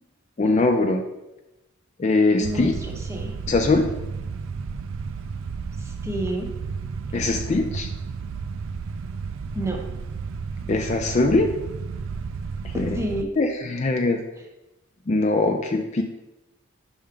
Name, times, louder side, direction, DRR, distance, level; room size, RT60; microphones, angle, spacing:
voice 1, 0.4-1.0 2.0-2.7 3.5-3.9 7.1-7.9 10.7-11.5 12.8-13.0 13.4-14.2 15.1-16.0, left 3 dB, 30° left, 4 dB, 0.4 m, -21 dB
voice 2, 2.4-3.3 5.8-6.6 9.5-9.8 12.7-13.3, equal, 15° right, 1 dB, 0.7 m, -30 dB
sound 1, 2.4-13.2, right 5 dB, 75° right, 0.4 m, -32 dB
5.5 x 3.5 x 5.1 m, 0.97 s
head